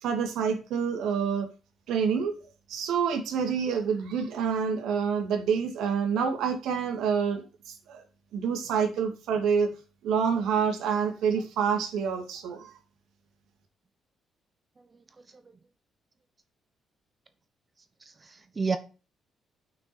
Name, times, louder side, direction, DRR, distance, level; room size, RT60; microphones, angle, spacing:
voice 1, 0.0-1.5 1.9-2.3 2.7-8.0 8.3-9.7 10.0-12.7, right 6 dB, 85° right, 2.3 m, -27 dB
voice 2, 18.0-18.8, right 4 dB, 30° right, 1.0 m, -31 dB
6.2 x 6.1 x 6.9 m
cardioid pair, 90°, 0 cm